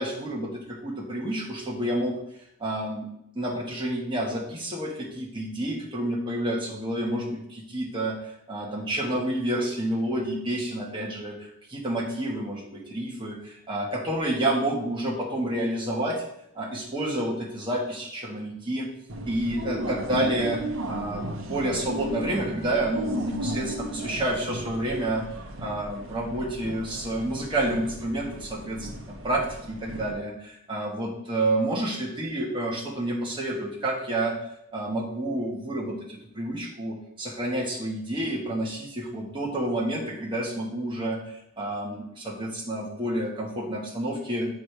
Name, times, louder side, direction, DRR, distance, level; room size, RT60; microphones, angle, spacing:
voice 1, 0.0-2.2 2.6-3.1 3.3-8.2 8.5-11.4 11.7-16.2 16.5-18.9 19.2-25.2 25.6-34.4 34.7-36.0 36.3-41.2 41.6-44.5, right 1 dB, 25° right, -3 dB, 1.4 m, -29 dB
sound 1, 19.1-30.1, right 1 dB, 70° right, 1.0 m, -35 dB
8.6 x 4.8 x 3.3 m, 0.76 s
head